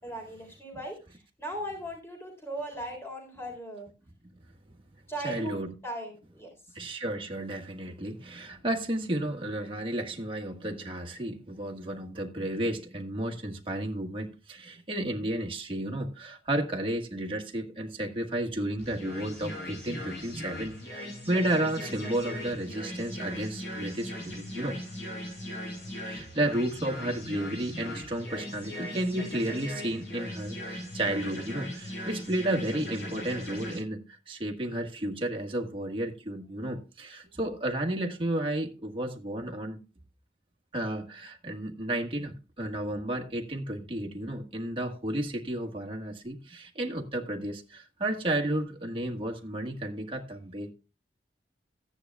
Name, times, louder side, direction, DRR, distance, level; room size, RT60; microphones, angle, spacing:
voice 1, 0.0-3.9 5.1-6.8, right 1 dB, 15° left, 3.8 m, -38 dB
voice 2, 5.2-5.7 6.7-24.8 26.0-39.8 40.7-50.7, right 1 dB, 30° right, 1.5 m, -32 dB
sound 1, 18.8-33.8, left 1 dB, 80° left, 6.6 m, -39 dB
15.0 x 9.9 x 2.3 m
head